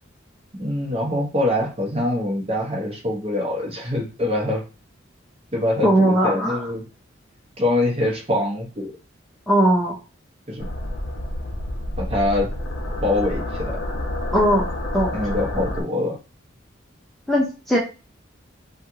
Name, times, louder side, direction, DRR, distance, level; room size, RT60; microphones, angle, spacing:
voice 1, 0.6-4.6 5.5-6.8 7.6-8.9 10.5-10.7 12.0-12.5 13.0-13.8 15.1-16.2, left 1 dB, 30° right, -1 dB, 0.9 m, -24 dB
voice 2, 5.8-6.6 9.5-9.9 14.3-14.6 14.9-15.1 17.3-17.8, right 1 dB, ahead, -5 dB, 0.6 m, -18 dB
sound 1, 10.6-15.8, left 1 dB, 60° left, 0.6 m, -29 dB
3.2 x 2.4 x 2.7 m, 0.31 s
head